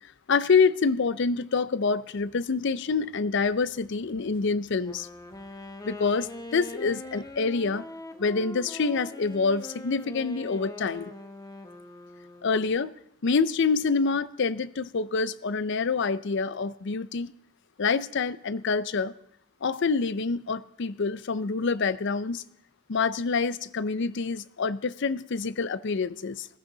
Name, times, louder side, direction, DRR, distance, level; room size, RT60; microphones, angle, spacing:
voice 1, 0.3-5.1 5.8-7.9 8.2-11.1 12.4-12.9 13.2-17.3 17.8-19.1 19.6-22.4 22.9-26.5, left 4 dB, 55° left, 0.5 m, -26 dB
sound 1, 1.7-7.9, equal, 25° right, 7.1 m, -64 dB
Wind instrument woodwind instrument, 4.7-12.8, left 1 dB, 15° left, 1.1 m, -42 dB
20.5 x 14.5 x 3.9 m
head